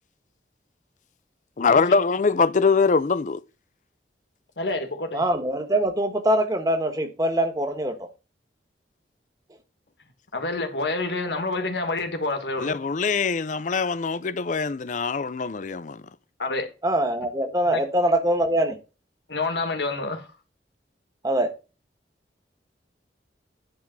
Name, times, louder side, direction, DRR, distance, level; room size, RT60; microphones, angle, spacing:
voice 1, 1.6-3.4 12.6-16.0, left 4 dB, 45° left, 0.5 m, -23 dB
voice 2, 4.6-5.2 10.3-12.8 16.4-16.7 17.7-17.8 19.3-20.3, left 3 dB, 75° left, 1.7 m, -28 dB
voice 3, 5.1-8.1 16.8-18.8 21.2-21.5, right 1 dB, 20° right, 1.3 m, -23 dB
10.5 x 3.6 x 6.3 m
head